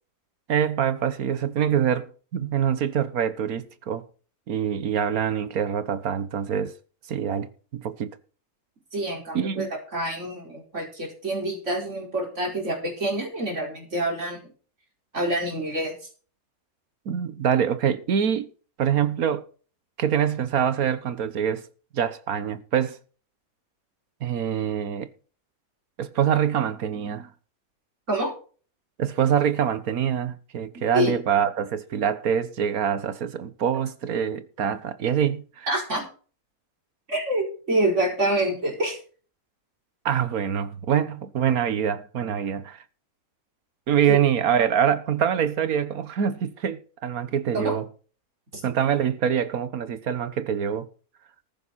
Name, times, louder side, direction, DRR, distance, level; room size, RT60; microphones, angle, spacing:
voice 1, 0.5-4.0 4.5-6.7 7.1-8.2 9.3-9.7 17.1-18.5 18.8-19.4 20.0-21.7 21.9-23.0 24.2-25.1 26.0-27.3 29.0-35.7 40.0-42.8 43.9-47.9 48.6-50.9, right 8 dB, 80° right, 1.5 m, -25 dB
voice 2, 8.9-14.4 15.1-16.0 28.1-28.3 30.9-31.1 35.7-36.1 37.1-39.0 44.1-44.2 47.5-47.7 48.5-48.6, right 1 dB, 55° right, 5.0 m, -27 dB
14.5 x 10.5 x 4.2 m
omnidirectional pair, 1.5 m